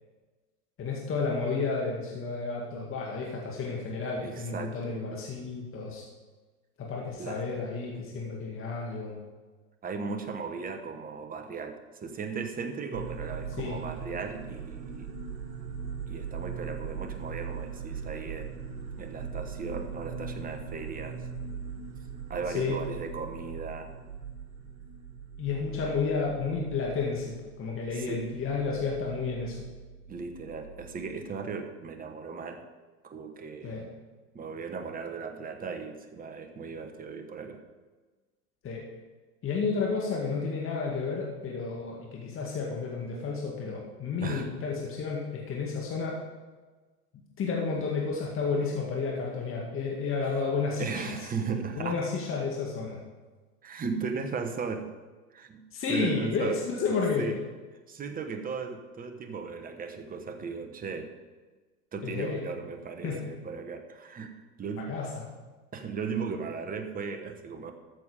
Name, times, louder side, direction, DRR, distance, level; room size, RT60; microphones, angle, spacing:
voice 1, 0.8-6.0 6.8-9.2 13.6-13.7 22.5-22.8 25.4-29.6 33.6-33.9 38.6-38.8 39.4-46.2 47.4-51.0 51.8-53.0 55.7-57.3 62.0-62.4 63.0-63.2 64.8-65.2, left 4 dB, 25° left, -2 dB, 2.1 m, -31 dB
voice 2, 4.2-5.0 7.2-7.4 9.8-15.1 16.1-18.6 19.0-21.3 22.3-23.9 27.9-28.3 30.1-32.7 33.0-33.8 34.3-37.6 44.2-44.5 50.2-50.4 50.8-52.0 53.6-54.9 55.3-56.6 57.2-57.4 57.9-61.1 61.9-65.0 65.7-67.7, right 5 dB, 20° right, 6 dB, 1.2 m, -37 dB
sound 1, 12.9-31.3, right 6 dB, 70° right, 2.1 m, -40 dB
13.5 x 7.1 x 5.0 m, 1.3 s
hypercardioid pair, 105°, 46 cm